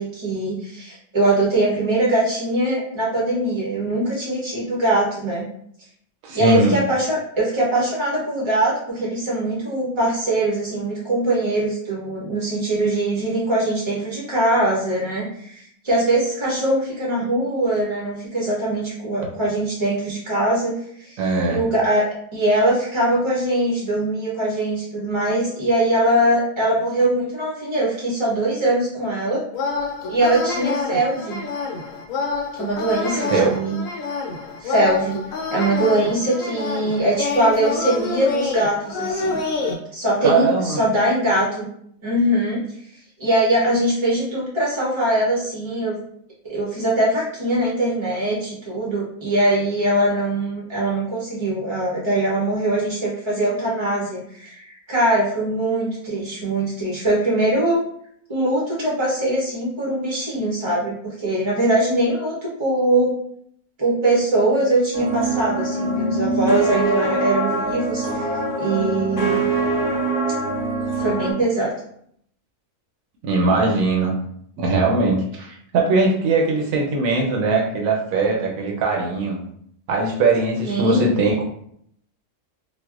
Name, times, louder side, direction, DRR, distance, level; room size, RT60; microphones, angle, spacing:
voice 1, 0.0-5.5 6.3-20.7 21.0-21.2 21.5-22.0 22.3-29.4 30.1-31.5 32.6-33.9 34.6-35.2 35.5-39.4 39.9-41.7 42.0-42.6 43.2-46.0 46.5-57.8 58.3-62.3 62.6-63.1 63.8-69.4 71.0-71.7 80.6-81.1, right 1 dB, 35° right, -5 dB, 0.5 m, -22 dB
voice 2, 6.2-6.8 21.2-21.6 33.1-33.5 40.2-40.8 73.2-74.1 74.6-79.4 79.9-81.5, right 3 dB, 85° right, -1 dB, 1.0 m, -20 dB
sound 1, 29.5-39.7, left 4 dB, 80° left, 1.0 m, -27 dB
sound 2, 64.9-71.3, right 2 dB, 45° left, 1.0 m, -23 dB
4.4 x 2.1 x 2.3 m, 0.69 s
omnidirectional pair, 1.4 m